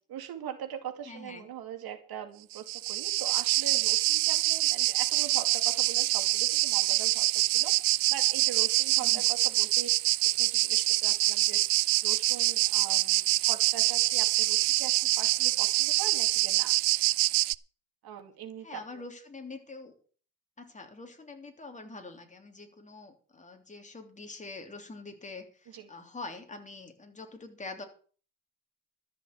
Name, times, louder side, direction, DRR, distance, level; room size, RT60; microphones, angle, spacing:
voice 1, 0.1-10.1 10.4-11.6 12.0-16.8 18.0-19.0 25.7-25.9, right 9 dB, 60° right, 7 dB, 2.4 m, -42 dB
voice 2, 1.0-1.5 9.0-9.3 18.6-19.9 20.6-27.8, left 3 dB, 15° left, 4 dB, 3.3 m, -45 dB
sound 1, 2.5-17.5, right 21 dB, 75° right, 0.6 m, -25 dB
13.0 x 6.8 x 8.6 m, 0.42 s
cardioid pair, 110°, 41 cm